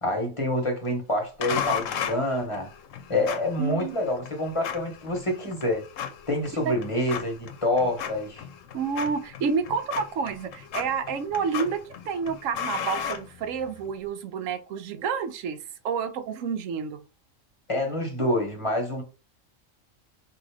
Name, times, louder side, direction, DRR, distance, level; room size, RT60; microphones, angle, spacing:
voice 1, 0.0-2.7 3.1-5.8 6.3-8.4 17.7-19.0, left 1 dB, 25° left, 1.1 m, -27 dB
sound 1, 1.4-13.9, left 8 dB, 75° left, 1.0 m, -36 dB
voice 2, 3.6-4.0 6.7-6.8 8.7-15.6 15.8-17.0, right 6 dB, 80° right, 1.0 m, -29 dB
3.8 x 2.8 x 4.7 m
omnidirectional pair, 1.3 m